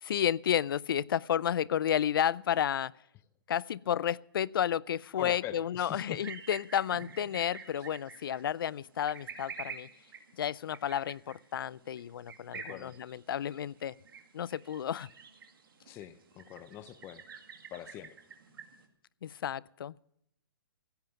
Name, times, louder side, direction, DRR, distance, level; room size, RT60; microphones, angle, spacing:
voice 1, 0.0-2.9 3.5-9.9 10.4-13.9 14.3-15.1 19.2-19.9, left 9 dB, 70° left, 0.4 m, -31 dB
voice 2, 5.2-6.2 12.5-12.9 15.9-17.2 17.7-18.1, left 12 dB, 20° left, 0.5 m, -43 dB
sound 1, 6.2-18.9, right 6 dB, 70° right, 2.2 m, -49 dB
16.0 x 7.7 x 8.0 m
hypercardioid pair, 145°, 12 cm